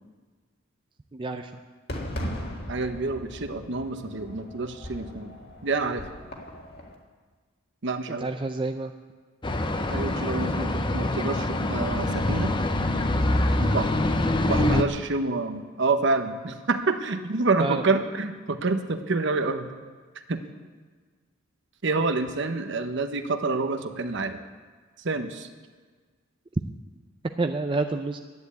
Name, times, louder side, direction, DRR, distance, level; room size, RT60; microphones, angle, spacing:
voice 1, 1.1-1.5 8.1-8.9 17.6-17.8 27.4-28.2, right 3 dB, 25° right, 6 dB, 0.4 m, -28 dB
Fireworks, 1.9-7.0, equal, 50° left, 1.9 m, -38 dB
voice 2, 2.7-5.3 5.6-6.1 7.8-8.3 9.9-12.5 13.6-13.9 14.4-19.7 20.3-20.4 21.8-24.4 25.0-25.5, right 3 dB, 60° right, 7 dB, 1.0 m, -27 dB
sound 1, 9.4-14.8, left 1 dB, 20° left, 0.6 m, -25 dB
10.5 x 10.5 x 8.4 m, 1.5 s
head